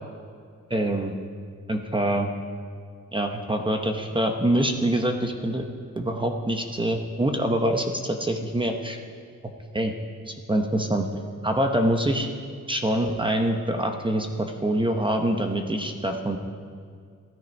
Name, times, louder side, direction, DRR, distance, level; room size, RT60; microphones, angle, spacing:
voice 1, 0.7-1.1 1.7-2.3 3.1-5.7 5.9-9.0 9.7-9.9 10.3-11.1 11.4-12.3 12.7-16.4, right 1 dB, 15° right, 4 dB, 0.9 m, -25 dB
15.5 x 12.5 x 5.3 m, 2.2 s
wide cardioid pair, 145°, 31 cm